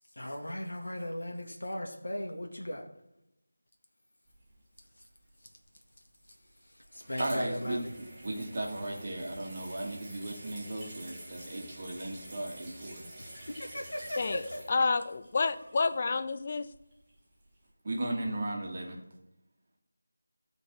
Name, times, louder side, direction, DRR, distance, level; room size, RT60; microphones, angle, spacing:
voice 1, 0.1-2.9 6.6-7.9 13.2-14.9, left 1 dB, 65° left, 2 dB, 1.9 m, -37 dB
sound 1, 4.3-5.2 6.2-16.3 16.7-17.1 17.4-17.6, right 1 dB, 15° right, 3.3 m, -48 dB
voice 2, 7.2-13.0 17.8-19.0, right 1 dB, 35° right, 0 dB, 2.4 m, -36 dB
voice 3, 14.7-16.7, left 4 dB, 30° left, 12 dB, 0.6 m, -29 dB
15.0 x 5.4 x 6.3 m, 0.88 s
figure-of-eight pair, 165°, 0 cm